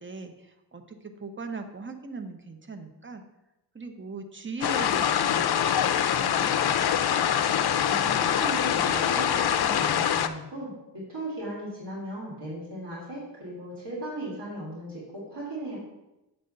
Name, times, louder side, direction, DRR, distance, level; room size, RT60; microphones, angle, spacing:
voice 1, 0.0-3.2 3.7-6.7, right 3 dB, 25° right, 7 dB, 0.8 m, -39 dB
sound 1, 4.6-10.3, left 9 dB, 60° left, 0.5 m, -24 dB
voice 2, 7.9-15.8, right 1 dB, 70° right, -7 dB, 3.3 m, -37 dB
8.3 x 3.9 x 6.6 m, 0.95 s
wide cardioid pair, 110°, 43 cm